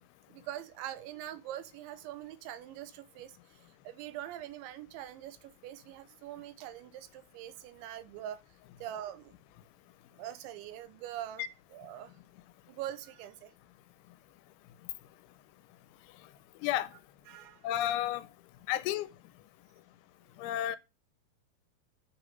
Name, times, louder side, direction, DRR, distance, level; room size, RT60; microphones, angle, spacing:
voice 1, 0.3-8.4 8.8-9.4 10.2-11.5 11.7-12.1 12.7-13.5 17.3-17.7 20.3-20.4, right 12 dB, 80° right, 3.0 m, -43 dB
voice 2, 17.6-18.3 18.7-19.1 20.4-20.8, left 12 dB, 85° left, 3.1 m, -31 dB
9.2 x 5.1 x 5.3 m
omnidirectional pair, 5.4 m